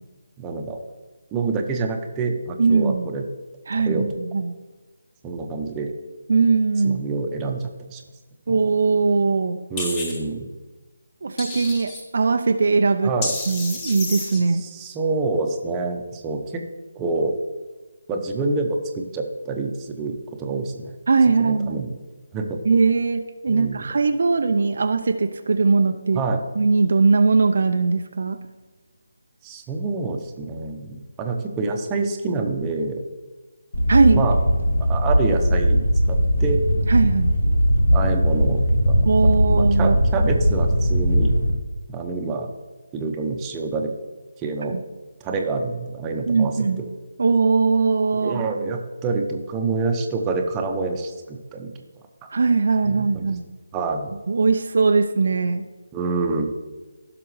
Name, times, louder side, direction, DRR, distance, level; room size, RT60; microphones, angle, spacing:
voice 1, 0.4-0.8 1.3-3.3 3.8-4.1 5.2-5.9 6.8-8.0 8.5-8.6 9.7-10.5 13.0-13.3 14.6-16.6 17.0-17.3 18.1-20.9 21.4-21.9 22.3-22.6 23.5-23.8 26.1-26.4 29.4-33.0 34.1-34.4 34.8-35.8 36.1-36.6 37.9-39.1 39.5-41.3 41.9-42.5 42.9-43.9 44.4-44.8 45.2-46.9 48.1-51.7 52.2-52.3 52.8-53.4 53.7-54.1 55.9-56.5, right 3 dB, 15° right, 3 dB, 0.8 m, -27 dB
voice 2, 2.6-3.1 3.7-4.5 6.3-7.0 8.5-9.6 11.2-13.1 13.5-14.6 21.1-21.8 22.7-26.2 26.6-28.4 33.9-34.3 36.9-37.3 39.1-40.0 44.6-44.8 46.3-46.8 47.2-48.4 52.3-53.4 54.3-55.6, right 4 dB, 55° right, 7 dB, 0.5 m, -20 dB
sound 1, 9.8-10.2 11.4-12.0 13.2-14.4, left 2 dB, 20° left, 1.4 m, -30 dB
Low Rumbling, 33.7-41.5, equal, 70° left, 1.5 m, -19 dB
15.5 x 6.0 x 3.1 m, 1.2 s
figure-of-eight pair, 150°, 0 cm